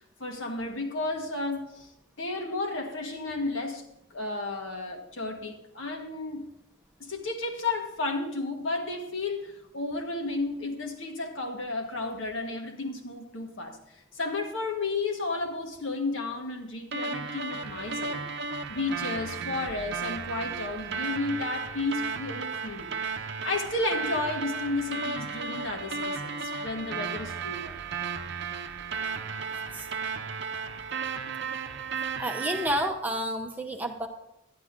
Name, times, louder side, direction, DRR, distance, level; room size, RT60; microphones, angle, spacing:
voice 1, 0.2-1.9 2.2-6.5 7.0-18.2 18.7-27.7, left 3 dB, 70° left, 1.5 m, -33 dB
sound 1, 16.9-32.9, right 5 dB, 60° right, 0.7 m, -34 dB
voice 2, 32.2-34.1, equal, 10° right, 0.9 m, -30 dB
11.0 x 9.9 x 3.7 m
head